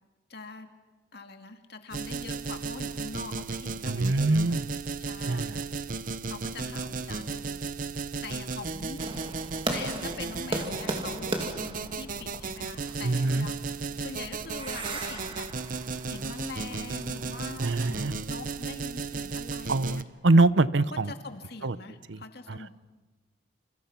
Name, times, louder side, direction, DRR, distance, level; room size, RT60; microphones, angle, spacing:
voice 1, 0.3-0.7 1.1-4.4 5.0-5.6 6.3-7.7 8.2-9.0 9.7-15.5 16.1-20.0 20.8-22.7, left 3 dB, 60° left, 6 dB, 2.2 m, -43 dB
sound 1, 1.9-20.0, right 4 dB, 45° right, 0.8 m, -35 dB
voice 2, 3.9-4.7 5.3-5.6 13.0-13.5 17.6-18.1 19.7-21.1 21.6-21.8 22.1-22.2 22.5-22.7, right 2 dB, 75° right, 16 dB, 0.8 m, -24 dB
sound 2, 9.0-18.1, right 1 dB, 30° right, 2.7 m, -38 dB
29.0 x 28.5 x 5.9 m, 1.2 s
head